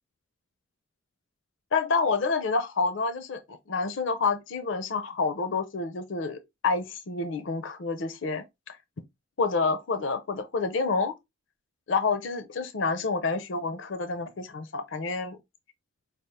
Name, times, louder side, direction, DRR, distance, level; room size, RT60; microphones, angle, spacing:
voice 1, 1.7-8.8 9.4-11.1 11.9-15.4, left 4 dB, 65° left, 0.6 m, -28 dB
5.0 x 2.4 x 3.3 m
head